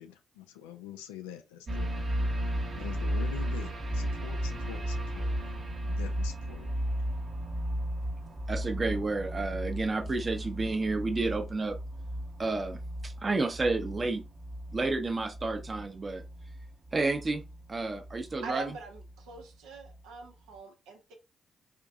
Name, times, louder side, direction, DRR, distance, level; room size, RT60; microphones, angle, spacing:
voice 1, 0.0-1.9 2.8-6.7, left 11 dB, 90° left, 0.4 m, -45 dB
sound 1, 1.7-19.4 19.8-20.0, equal, 60° right, 1.1 m, -35 dB
voice 2, 8.5-11.8 12.4-14.2 14.7-16.2 16.9-17.4 17.7-18.7, right 3 dB, 40° right, 0.7 m, -31 dB
voice 3, 18.4-21.1, right 3 dB, 85° right, 0.7 m, -43 dB
4.4 x 2.6 x 2.4 m
hypercardioid pair, 40°, 0 cm